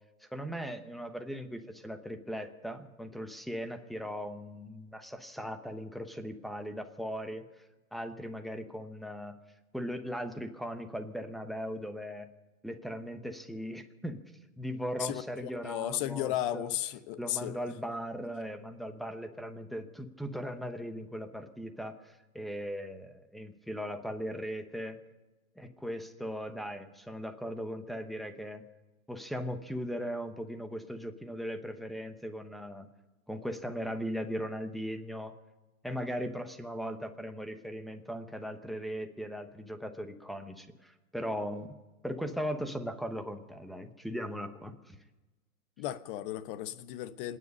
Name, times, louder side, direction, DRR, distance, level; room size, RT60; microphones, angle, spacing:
voice 1, 0.3-7.4 7.9-9.4 9.7-12.3 12.6-14.2 14.6-16.8 17.2-25.0 25.6-28.6 29.1-32.9 33.3-35.4 35.8-41.8 42.0-45.0, equal, ahead, 1.0 m, -38 dB
voice 2, 15.6-17.6 45.8-47.4, left 13 dB, 40° left, 1.1 m, -34 dB
27.0 x 9.9 x 5.4 m
hypercardioid pair, 130°, 43 cm